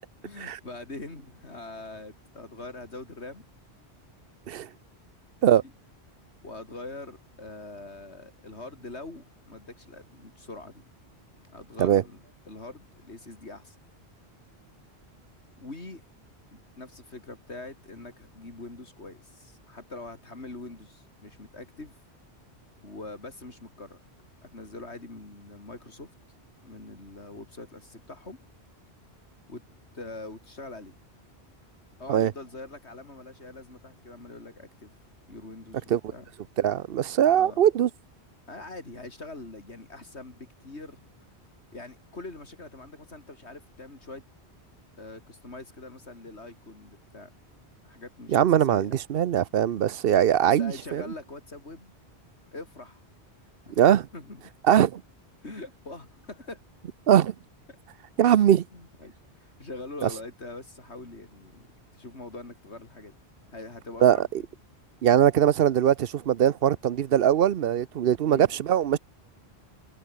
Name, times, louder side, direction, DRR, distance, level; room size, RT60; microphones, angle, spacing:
voice 1, 0.2-3.5 5.4-5.5 6.4-10.8 11.5-13.8 15.6-16.0 16.5-22.0 22.8-24.0 24.4-26.1 26.6-28.4 29.5-29.6 29.9-31.0 32.0-34.9 35.3-36.3 37.3-37.6 38.5-41.0 41.7-44.2 45.0-47.3 47.8-48.9 50.4-51.9 52.5-53.0 53.6-53.8 54.1-54.4 55.4-56.6 58.2-58.4 58.7-61.7 61.9-63.2 63.5-64.5 68.2-68.5, left 2 dB, 85° left, 4.3 m, -43 dB
voice 2, 36.6-37.9 48.3-51.0 53.8-54.1 54.7-55.0 57.1-57.3 58.2-58.6 60.0-60.1 64.0-64.2 65.0-69.0, right 10 dB, 65° right, 0.8 m, -21 dB
omnidirectional pair, 1.1 m